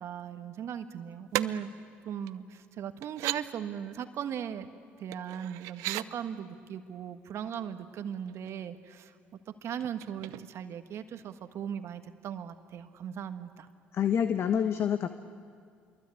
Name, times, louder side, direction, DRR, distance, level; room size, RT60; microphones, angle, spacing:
voice 1, 0.0-1.7 2.0-4.7 5.0-9.1 9.6-13.7, right 8 dB, 60° right, 8 dB, 1.6 m, -38 dB
sound 1, 1.3-1.5 2.3-2.4 3.0-3.4 5.1-6.1 7.8-8.0 8.3-8.8 9.8-10.8 11.1-11.2, right 18 dB, 75° right, 0.6 m, -35 dB
voice 2, 13.9-15.1, left 8 dB, 55° left, 9 dB, 1.1 m, -27 dB
26.5 x 23.0 x 8.5 m, 2.2 s
hypercardioid pair, 60°, 5 cm